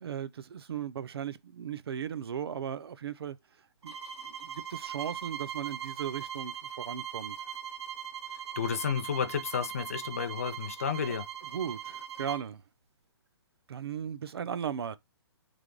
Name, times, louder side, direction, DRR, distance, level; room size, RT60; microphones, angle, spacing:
voice 1, 0.0-3.4 3.8-3.9 4.2-7.4 11.1-11.2 11.5-12.6 13.7-15.0, right 8 dB, 65° right, 0.5 m, -37 dB
sound 1, 3.8-12.5, right 9 dB, 90° right, 0.9 m, -40 dB
voice 2, 8.6-11.3, left 7 dB, 35° left, 0.4 m, -31 dB
3.4 x 3.3 x 3.8 m
hypercardioid pair, 175°, 14 cm